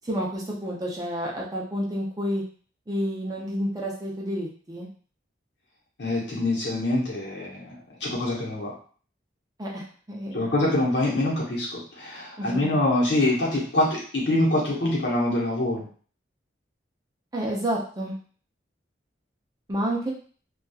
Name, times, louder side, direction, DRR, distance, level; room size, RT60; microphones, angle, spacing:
voice 1, 0.0-2.4 2.9-4.9 9.6-10.7 12.4-12.7 17.3-18.1 19.7-20.1, equal, 20° right, -3 dB, 0.5 m, -30 dB
voice 2, 6.0-7.8 8.0-8.7 10.3-15.8, left 1 dB, 60° left, -4 dB, 0.9 m, -25 dB
2.8 x 2.3 x 2.3 m, 0.43 s
head